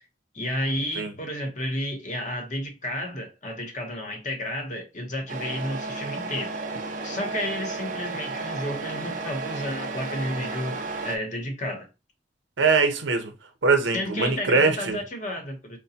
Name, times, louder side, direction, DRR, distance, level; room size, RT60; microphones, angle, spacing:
voice 1, 0.3-6.5 7.0-11.9 13.9-15.8, left 1 dB, 40° left, 0.8 m, -31 dB
Truck, 5.3-11.2, right 3 dB, 45° right, 0.6 m, -33 dB
voice 2, 12.6-13.3 13.6-15.0, right 4 dB, 75° right, 0.7 m, -22 dB
4.9 x 2.1 x 2.8 m
head